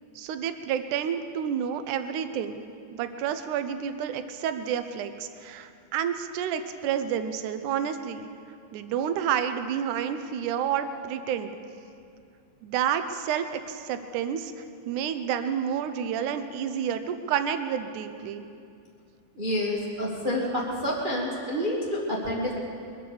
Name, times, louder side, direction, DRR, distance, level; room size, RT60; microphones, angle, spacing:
voice 1, 0.2-2.6 2.9-8.3 8.7-11.6 12.6-18.5, right 8 dB, 75° right, 9 dB, 2.0 m, -30 dB
voice 2, 19.3-22.5, equal, 40° right, -4 dB, 0.7 m, -28 dB
22.5 x 8.7 x 7.0 m, 2.4 s
omnidirectional pair, 4.2 m